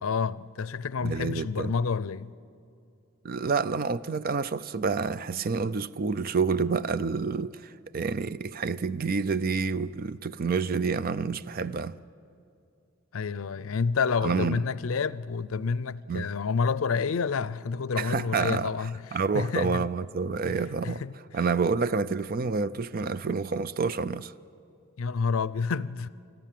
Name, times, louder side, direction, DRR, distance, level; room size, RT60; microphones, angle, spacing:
voice 1, 0.0-2.3 13.1-19.0 19.3-19.8 20.5-21.1 25.0-26.1, left 5 dB, 80° left, 0.5 m, -29 dB
voice 2, 1.0-1.7 3.2-11.9 14.2-14.6 16.1-16.3 18.0-18.7 19.1-21.0 21.3-24.3, right 5 dB, 45° right, 0.4 m, -28 dB
25.5 x 14.0 x 7.5 m
head